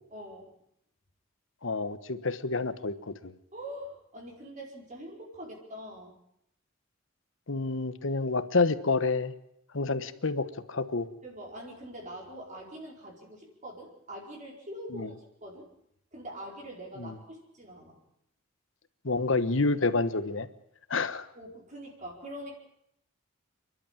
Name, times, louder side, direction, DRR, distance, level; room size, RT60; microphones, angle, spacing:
voice 1, 0.1-0.5 3.5-6.2 9.8-9.9 10.2-10.4 11.2-15.1 15.4-15.7 16.1-18.0 21.3-22.6, equal, 40° right, -1 dB, 4.9 m, -44 dB
voice 2, 1.6-3.3 7.5-9.3 9.7-11.1 14.9-15.1 17.0-17.1 19.0-20.5 20.9-21.3, left 3 dB, 65° left, 13 dB, 1.2 m, -28 dB
29.0 x 11.5 x 9.0 m, 0.75 s
head